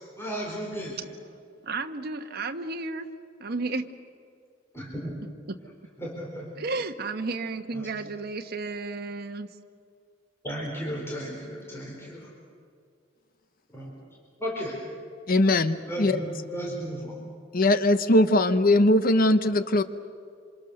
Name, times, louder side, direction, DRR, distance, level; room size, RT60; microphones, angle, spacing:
voice 1, 0.2-1.0 4.7-5.1 6.0-6.5 7.7-7.9 10.4-12.3 13.7-14.0 14.4-14.8 15.8-17.2, equal, 15° left, -4 dB, 4.6 m, -34 dB
voice 2, 1.6-3.1 3.4-3.9 6.6-9.5, right 3 dB, 55° right, 6 dB, 1.3 m, -32 dB
voice 3, 15.3-16.1 17.5-19.8, left 1 dB, 50° left, 12 dB, 0.8 m, -20 dB
27.0 x 26.5 x 6.7 m, 2.3 s
head